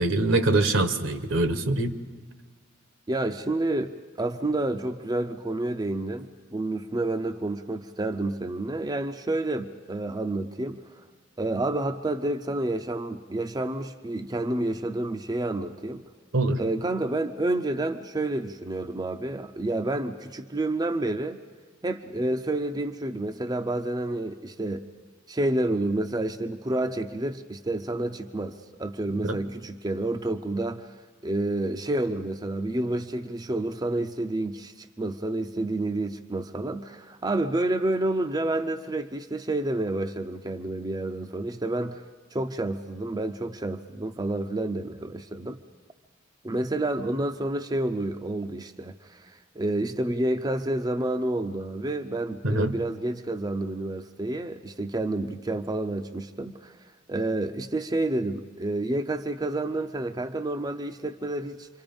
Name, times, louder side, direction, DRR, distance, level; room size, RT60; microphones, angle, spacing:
voice 1, 0.0-2.0 16.3-16.6 29.2-29.4 52.4-52.7, right 2 dB, 70° right, 10 dB, 1.2 m, -24 dB
voice 2, 3.1-10.8 11.4-16.0 16.6-21.4 21.8-24.9 25.3-30.9 31.2-42.0 42.3-45.6 46.4-56.8 57.1-61.7, right 2 dB, 20° right, 6 dB, 0.6 m, -29 dB
28.0 x 24.0 x 5.3 m, 1.5 s
head